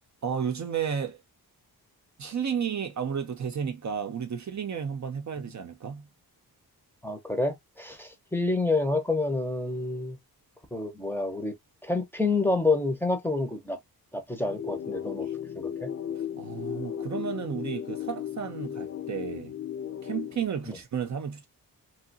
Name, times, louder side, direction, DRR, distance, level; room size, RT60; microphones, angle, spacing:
voice 1, 0.2-1.2 2.2-6.1 16.4-19.5 20.0-21.5, right 7 dB, 50° right, 0.6 m, -32 dB
voice 2, 7.0-10.2 10.7-11.5 11.8-13.8 14.1-15.3 15.6-15.9 20.7-20.8, left 3 dB, 5° left, 0.7 m, -28 dB
sound 1, 14.4-20.4, left 9 dB, 40° left, 0.6 m, -35 dB
3.1 x 2.9 x 2.7 m
wide cardioid pair, 150°, 38 cm